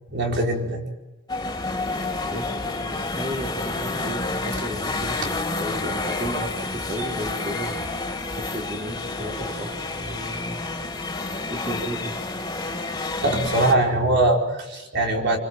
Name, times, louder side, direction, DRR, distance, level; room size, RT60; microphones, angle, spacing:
voice 1, 0.1-0.9 5.2-5.3 13.2-15.4, right 2 dB, 55° right, 2 dB, 4.7 m, -22 dB
sound 1, 1.3-13.7, left 3 dB, 20° left, 3.5 m, -29 dB
voice 2, 2.3-10.8 11.5-12.2, equal, 30° right, -1 dB, 4.6 m, -34 dB
26.0 x 25.0 x 7.7 m, 1.1 s
head